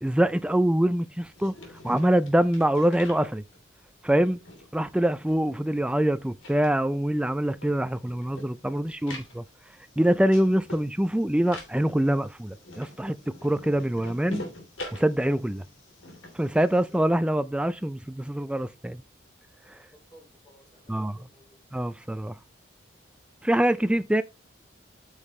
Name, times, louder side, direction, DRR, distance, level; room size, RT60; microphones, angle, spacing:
voice 1, 0.0-1.5 1.8-3.4 4.0-4.4 4.7-9.4 10.0-14.4 14.9-15.6 16.3-19.0 19.7-19.8 20.9-21.1 21.7-22.3 23.4-24.2, right 1 dB, 5° right, 0.3 m, -24 dB
sound 1, 1.2-3.8 4.2-6.0 6.3-17.0, left 1 dB, 85° left, 3.1 m, -44 dB
voice 2, 15.5-15.8 16.5-17.0 19.9-21.6, equal, 20° left, 4.2 m, -57 dB
8.8 x 6.5 x 3.2 m
head